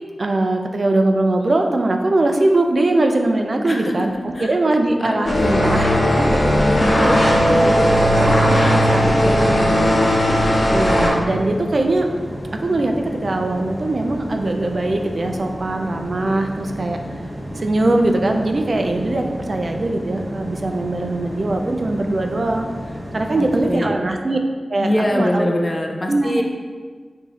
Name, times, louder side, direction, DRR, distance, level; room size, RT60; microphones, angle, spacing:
voice 1, 0.2-5.9 6.2-12.1 12.6-17.0 17.6-22.7 23.1-24.4 24.7-25.5 26.1-26.4, right 2 dB, 50° right, 4 dB, 0.4 m, -21 dB
voice 2, 3.6-4.5 5.0-5.8 23.4-24.0 24.8-26.4, left 1 dB, 35° left, 1 dB, 0.6 m, -23 dB
sound 1, 5.2-11.1, equal, 65° left, 1.3 m, -16 dB
sound 2, 7.8-23.8, equal, 10° right, 0.9 m, -31 dB
4.7 x 2.7 x 4.1 m, 1.5 s
wide cardioid pair, 75°, 0 cm